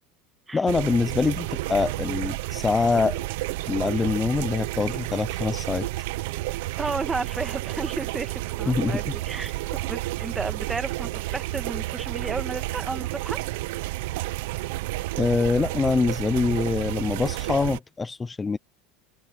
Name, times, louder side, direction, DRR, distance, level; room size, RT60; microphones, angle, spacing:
voice 1, 0.5-3.2 3.7-5.9 8.7-9.0 15.2-18.6, left 4 dB, 10° left, 0.6 m, -24 dB
sound 1, 0.7-17.8, right 18 dB, 70° right, 0.9 m, -31 dB
voice 2, 6.8-13.4, right 3 dB, 10° right, 1.7 m, -33 dB
open air
supercardioid pair, 155°, 0 cm